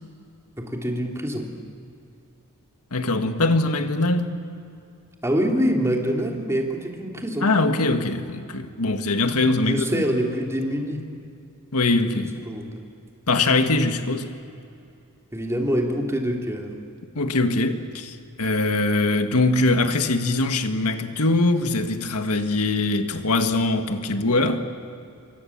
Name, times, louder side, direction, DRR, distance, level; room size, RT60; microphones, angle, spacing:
voice 1, 0.6-1.5 5.2-7.5 9.6-11.0 12.4-12.8 15.3-16.7, equal, 15° right, 3.2 m, -25 dB
voice 2, 2.9-4.4 7.4-10.0 11.7-12.3 13.3-14.3 17.2-24.7, left 2 dB, 90° left, 1.8 m, -22 dB
27.5 x 24.5 x 7.4 m
head